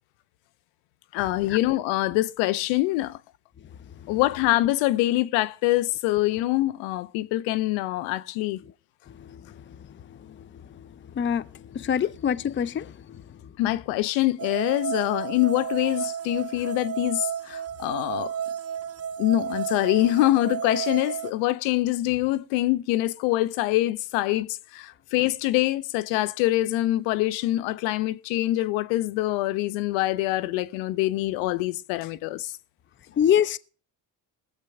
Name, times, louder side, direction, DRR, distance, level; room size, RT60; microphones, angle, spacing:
voice 1, 1.1-3.2 4.1-8.6 13.6-18.3 19.2-32.5, left 16 dB, 75° left, 0.8 m, -25 dB
voice 2, 11.2-11.5 11.7-12.9 33.2-33.6, left 9 dB, 25° left, 0.6 m, -24 dB
sound 1, 14.4-21.3, right 8 dB, 30° right, 0.8 m, -32 dB
21.0 x 8.2 x 3.5 m
hypercardioid pair, 70°, 45 cm